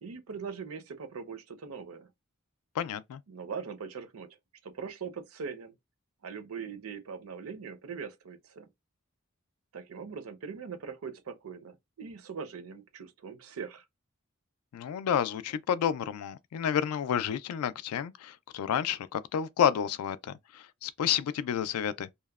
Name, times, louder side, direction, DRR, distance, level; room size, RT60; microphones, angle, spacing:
voice 1, 0.0-2.1 3.3-4.3 4.6-5.7 6.2-8.7 9.7-13.8, right 6 dB, 70° right, 0.5 m, -41 dB
voice 2, 2.8-3.2 14.7-22.1, left 8 dB, 85° left, 0.3 m, -30 dB
2.8 x 2.0 x 2.3 m
head